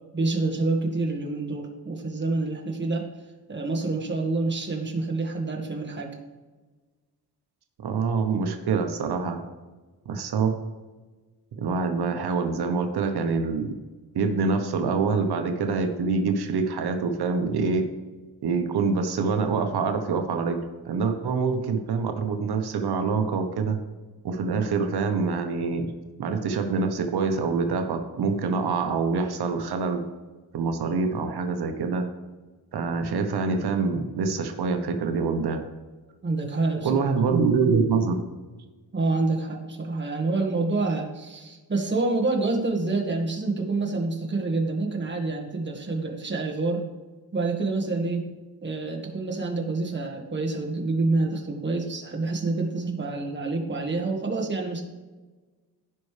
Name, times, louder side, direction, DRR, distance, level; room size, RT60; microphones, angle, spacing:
voice 1, 0.1-3.1 3.5-6.1 36.2-36.9 38.9-46.9 47.3-48.3 48.6-54.8, right 3 dB, 30° right, 1 dB, 1.6 m, -27 dB
voice 2, 7.8-9.4 10.1-10.6 11.6-13.7 14.1-17.9 18.4-23.8 24.2-25.9 26.2-30.1 30.5-32.1 32.7-35.6 36.8-38.2, right 4 dB, 75° right, 6 dB, 1.1 m, -25 dB
16.0 x 5.4 x 3.3 m, 1.3 s
wide cardioid pair, 120°, 39 cm